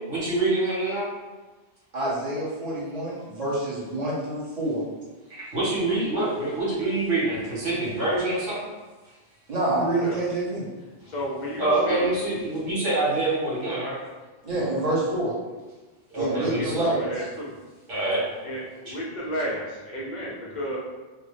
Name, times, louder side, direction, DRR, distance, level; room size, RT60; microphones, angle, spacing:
voice 1, 0.1-1.1 5.3-8.6 11.6-13.9 16.1-16.8 17.9-18.2 18.8-18.9, right 2 dB, 80° right, -9 dB, 1.8 m, -25 dB
voice 2, 1.9-4.8 9.5-10.6 14.4-15.3 16.2-17.2, right 1 dB, 35° right, -8 dB, 1.0 m, -27 dB
voice 3, 11.1-12.1 14.5-15.0 16.2-17.5 18.4-20.8, equal, 45° left, -4 dB, 0.7 m, -33 dB
3.2 x 2.0 x 3.2 m, 1.2 s
omnidirectional pair, 1.2 m